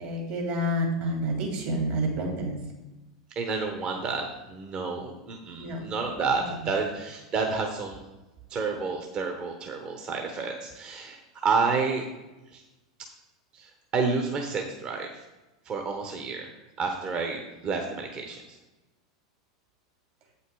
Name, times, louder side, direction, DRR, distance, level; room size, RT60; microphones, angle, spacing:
voice 1, 0.0-2.6 5.6-5.8 6.3-6.7, right 1 dB, 55° right, 1 dB, 2.6 m, -29 dB
voice 2, 3.3-8.0 8.5-12.0 12.5-12.6 13.0-13.1 13.5-15.2 15.6-16.5 16.8-18.6, right 4 dB, 35° right, 3 dB, 1.2 m, -30 dB
8.1 x 5.5 x 4.8 m, 1.1 s
hypercardioid pair, 95°, 3 cm